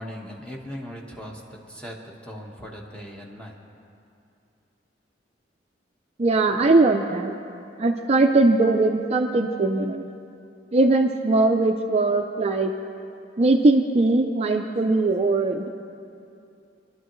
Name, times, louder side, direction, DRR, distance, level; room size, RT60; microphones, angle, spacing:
voice 1, 0.0-1.4 1.7-1.9 2.2-3.5, equal, 5° left, -2 dB, 1.3 m, -38 dB
voice 2, 6.2-7.3 7.8-10.1 10.7-12.7 13.4-15.7, right 2 dB, 35° right, 4 dB, 0.5 m, -20 dB
24.0 x 11.5 x 3.1 m, 2.6 s
head